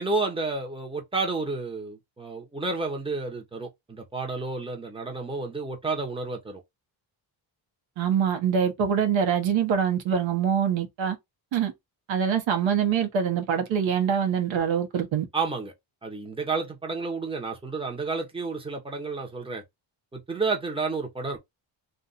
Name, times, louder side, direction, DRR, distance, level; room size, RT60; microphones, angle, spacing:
voice 1, 0.0-6.6 15.3-15.7 16.0-19.6 20.1-21.4, right 3 dB, 10° right, 1.1 m, -31 dB
voice 2, 8.0-11.2 11.5-11.7 12.1-15.3, right 7 dB, 80° right, 1.1 m, -24 dB
2.6 x 2.5 x 4.1 m
cardioid pair, 95°, 46 cm